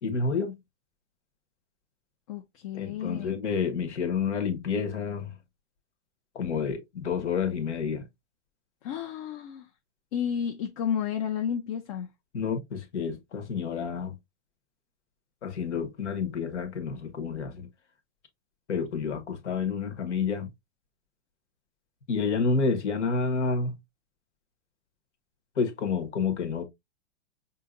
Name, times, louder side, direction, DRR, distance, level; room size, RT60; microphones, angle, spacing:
voice 1, 0.0-0.6 2.7-5.3 6.3-8.0 12.3-14.1 15.4-17.7 18.7-20.5 22.1-23.7 25.6-26.6, left 5 dB, 85° left, 1.3 m, -29 dB
voice 2, 2.3-3.4 8.8-9.7 10.1-12.1, left 8 dB, 35° left, 0.4 m, -31 dB
5.5 x 2.8 x 2.5 m
hypercardioid pair, 135°, 34 cm